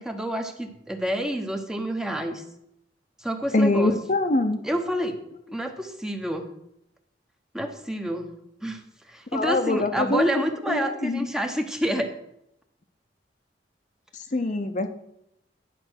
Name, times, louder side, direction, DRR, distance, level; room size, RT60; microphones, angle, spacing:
voice 1, 0.0-2.4 3.2-4.0 4.6-5.2 5.5-6.5 7.5-8.3 8.6-8.8 9.1-12.1, equal, 5° right, 5 dB, 0.8 m, -28 dB
voice 2, 3.5-4.6 9.3-11.3 14.3-14.9, left 2 dB, 45° left, 7 dB, 0.7 m, -24 dB
11.0 x 5.2 x 6.2 m, 0.79 s
head